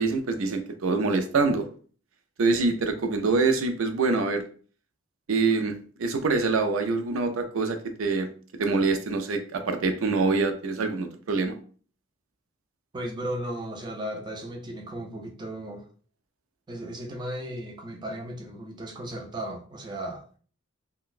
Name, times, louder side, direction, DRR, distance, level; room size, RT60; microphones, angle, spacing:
voice 1, 0.0-1.6 2.4-4.4 5.3-5.7 6.0-8.3 8.6-11.5, right 3 dB, 80° right, 0.5 m, -25 dB
voice 2, 12.9-15.8 16.7-20.2, right 1 dB, 20° right, 0.4 m, -35 dB
3.8 x 2.2 x 2.4 m
head